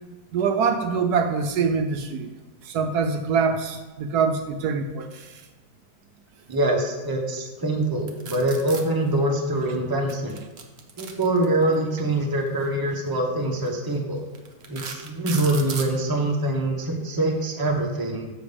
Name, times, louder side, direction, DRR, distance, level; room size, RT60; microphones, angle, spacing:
voice 1, 0.3-2.3 2.6-5.4, right 5 dB, 75° right, 7 dB, 1.1 m, -24 dB
voice 2, 6.5-10.4 11.0-14.2 14.7-18.3, right 1 dB, 15° right, 2 dB, 0.8 m, -24 dB
sound 1, 8.1-8.8 10.3-11.7 12.9-13.1 13.7-13.8 14.3-15.9, right 5 dB, 50° right, 0.9 m, -36 dB
6.2 x 5.1 x 6.8 m, 1.3 s
omnidirectional pair, 1.8 m